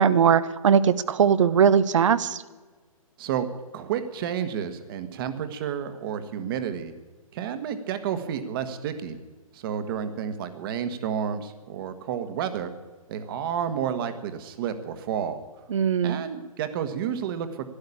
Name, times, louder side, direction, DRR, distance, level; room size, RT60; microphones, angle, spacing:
voice 1, 0.0-2.4 15.7-16.2, right 7 dB, 60° right, 16 dB, 0.8 m, -20 dB
voice 2, 3.7-6.9 7.3-9.2 9.5-12.7 13.1-15.4 16.0-17.7, right 8 dB, 40° right, 10 dB, 1.5 m, -30 dB
12.0 x 11.5 x 8.5 m, 1.3 s
figure-of-eight pair, 130°, 18 cm